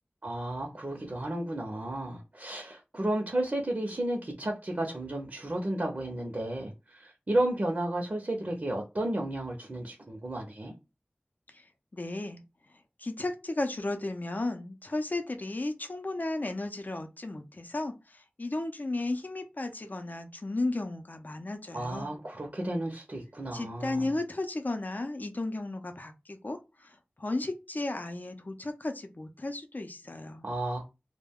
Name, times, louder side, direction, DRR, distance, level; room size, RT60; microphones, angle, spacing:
voice 1, 0.2-10.7 21.7-24.1 30.4-30.9, right 1 dB, 50° right, 0.7 m, -33 dB
voice 2, 11.9-12.4 13.0-22.1 23.5-30.4, left 2 dB, 50° left, 0.5 m, -34 dB
2.3 x 2.2 x 3.5 m
wide cardioid pair, 45°, 4 cm